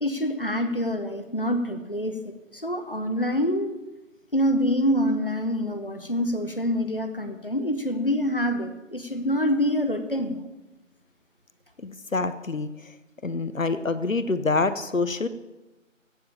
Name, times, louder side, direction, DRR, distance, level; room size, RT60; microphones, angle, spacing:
voice 1, 0.0-3.8 4.3-10.4, equal, 45° left, 8 dB, 0.9 m, -26 dB
voice 2, 11.8-12.7 13.2-15.3, left 3 dB, 80° left, 13 dB, 0.9 m, -26 dB
15.5 x 5.2 x 7.3 m, 1.1 s
figure-of-eight pair, 180°, 39 cm